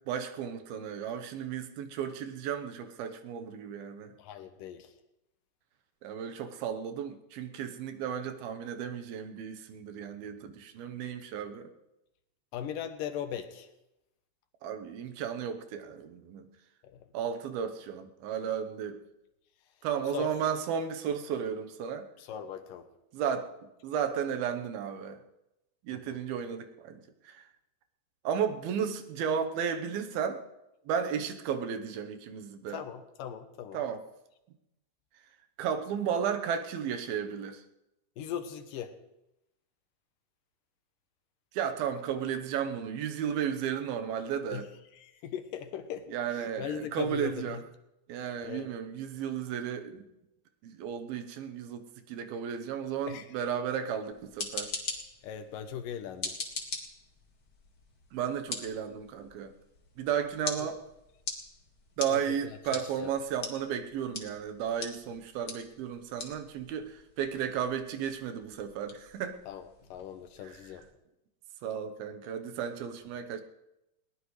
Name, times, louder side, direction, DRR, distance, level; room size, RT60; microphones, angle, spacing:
voice 1, 0.0-4.1 6.0-11.7 14.6-16.5 17.1-19.0 19.8-22.1 23.1-23.5 23.8-25.2 25.8-27.5 28.2-30.4 30.9-32.8 33.7-34.0 35.6-37.6 41.5-44.7 46.1-47.6 48.1-50.1 50.6-54.7 58.1-59.5 60.0-60.8 62.0-69.4 70.4-70.6 71.6-73.4, right 8 dB, 90° right, 7 dB, 3.0 m, -34 dB
voice 2, 4.2-4.9 12.5-13.7 16.9-17.1 20.1-20.3 22.2-22.9 25.9-26.2 32.7-33.8 38.2-39.0 44.5-44.7 44.9-47.6 48.4-48.7 53.1-53.3 55.2-56.4 60.6-60.7 62.1-62.4 62.7-63.1 69.5-70.8, left 9 dB, 75° left, 9 dB, 2.4 m, -39 dB
sound 1, 54.1-70.9, left 3 dB, 40° left, 1.4 m, -43 dB
21.0 x 18.5 x 3.2 m, 0.88 s
omnidirectional pair, 4.2 m